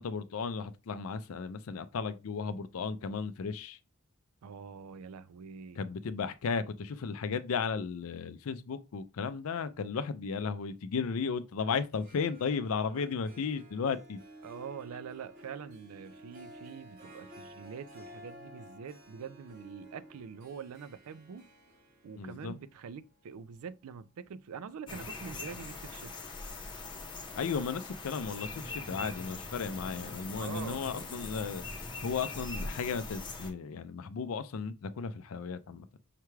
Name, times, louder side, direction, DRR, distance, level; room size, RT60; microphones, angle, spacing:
voice 1, 0.0-3.8 5.8-14.2 22.2-22.5 27.4-35.9, left 5 dB, 70° left, 0.4 m, -35 dB
voice 2, 4.4-5.8 13.0-13.1 14.4-21.5 22.0-26.1 30.4-30.8, right 6 dB, 75° right, 0.4 m, -45 dB
Harp, 12.0-24.8, equal, 40° right, 1.0 m, -53 dB
sound 1, 24.9-33.5, left 3 dB, 20° left, 0.7 m, -42 dB
5.7 x 2.3 x 3.1 m
head